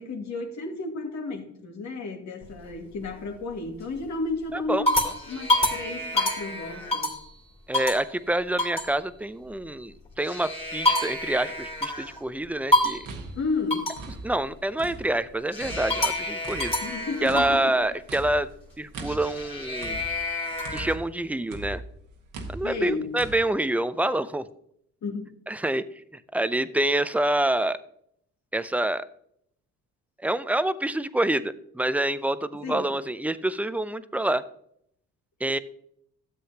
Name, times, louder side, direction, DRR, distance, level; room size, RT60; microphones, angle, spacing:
voice 1, 0.0-5.0 5.3-7.1 13.4-13.9 16.8-17.8 22.6-23.2 25.0-25.3 32.6-32.9, left 3 dB, 65° left, 2.1 m, -32 dB
sound 1, 2.4-3.1 3.6-4.0 4.5-7.3 7.7-8.1 8.6-8.9 10.1-12.2 12.7-13.1 13.7-14.1 15.5-17.6 19.0-21.0, left 1 dB, 20° left, 2.5 m, -27 dB
voice 2, 4.5-4.8 7.7-13.1 14.2-16.7 17.2-18.5 18.8-20.0 20.7-21.8 22.5-24.5 25.5-25.8 26.1-27.8 28.5-29.1 30.2-34.4 35.4-35.6, right 1 dB, 5° right, 0.5 m, -27 dB
sound 2, 12.8-15.3 15.6-21.2 21.5-23.4, right 2 dB, 85° right, 1.6 m, -40 dB
13.0 x 7.7 x 2.9 m
cardioid pair, 90°, 30 cm